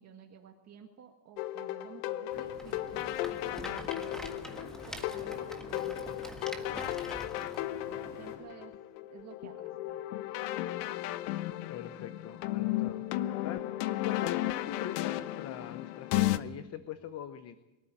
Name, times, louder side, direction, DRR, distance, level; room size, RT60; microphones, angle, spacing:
voice 1, 0.0-4.3 4.9-7.0 7.9-8.8 9.1-10.0, right 8 dB, 35° right, 2 dB, 1.8 m, -53 dB
sound 1, 1.4-16.4, left 14 dB, 75° left, 1.2 m, -35 dB
sound 2, 2.3-8.4, left 3 dB, 50° left, 7.0 m, -50 dB
Rattle, 2.5-7.6, right 1 dB, ahead, 1.4 m, -46 dB
voice 2, 11.7-13.7 14.0-17.6, left 10 dB, 30° left, 11 dB, 0.9 m, -42 dB
23.5 x 13.0 x 9.0 m, 1.0 s
cardioid pair, 155°, 48 cm